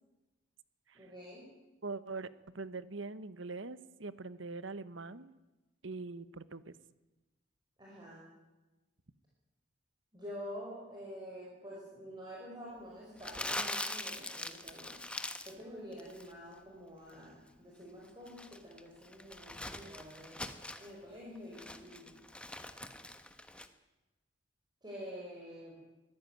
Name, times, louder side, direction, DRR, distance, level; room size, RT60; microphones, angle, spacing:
voice 1, 0.9-1.5 7.8-8.2 10.1-15.0 15.4-22.1 24.8-25.8, equal, 20° right, -5 dB, 5.8 m, -48 dB
voice 2, 1.8-5.3 5.8-6.7, right 3 dB, 70° right, 14 dB, 1.1 m, -43 dB
Crumpling crinkling, 13.2-15.6 15.9-16.3 18.0-20.9 21.4-23.7, left 1 dB, 5° left, 1.2 m, -42 dB
24.0 x 15.5 x 9.2 m, 1.1 s
head